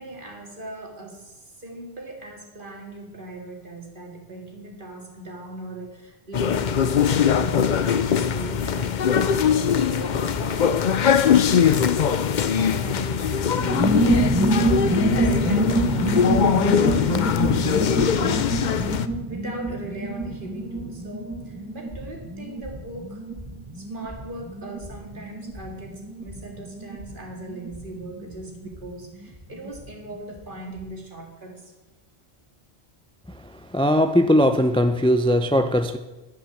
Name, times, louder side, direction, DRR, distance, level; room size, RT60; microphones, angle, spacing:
voice 1, 0.0-14.0 14.4-17.3 17.6-23.2 23.7-31.7, right 2 dB, 55° right, 1 dB, 2.5 m, -39 dB
sound 1, 6.3-19.1, left 7 dB, 55° left, 0.7 m, -21 dB
sound 2, 13.6-29.9 30.1-30.2 30.4-30.9, right 1 dB, 10° right, 1.4 m, -27 dB
voice 2, 33.7-36.0, equal, 5° left, 8 dB, 0.4 m, -19 dB
10.5 x 10.0 x 7.1 m, 1.1 s
omnidirectional pair, 1.1 m